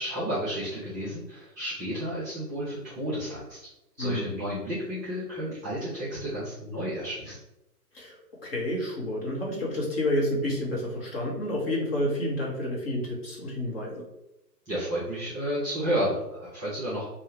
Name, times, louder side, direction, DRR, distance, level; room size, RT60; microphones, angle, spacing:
voice 1, 0.0-3.6 4.0-7.4 14.7-17.0, equal, 10° right, -9 dB, 0.7 m, -31 dB
voice 2, 8.4-14.0, left 1 dB, 35° left, -3 dB, 1.4 m, -29 dB
3.5 x 2.7 x 4.4 m, 0.91 s
hypercardioid pair, 150°, 50 cm